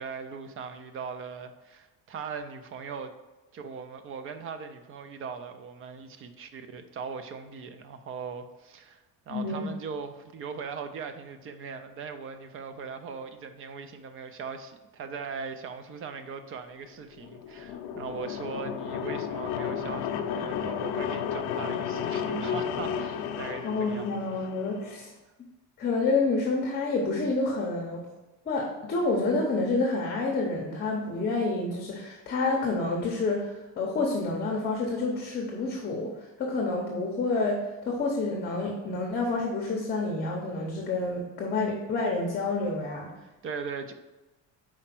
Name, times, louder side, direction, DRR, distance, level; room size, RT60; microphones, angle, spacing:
voice 1, 0.0-3.1 3.5-24.5 43.2-43.9, right 5 dB, 30° right, 9 dB, 0.4 m, -39 dB
voice 2, 9.3-9.7 23.6-25.1 25.8-28.0 28.5-43.1, left 3 dB, 25° left, -1 dB, 0.8 m, -28 dB
sound 1, 17.1-25.0, left 8 dB, 60° left, 0.6 m, -33 dB
5.0 x 4.4 x 5.9 m, 1.1 s
cardioid pair, 170°, 42 cm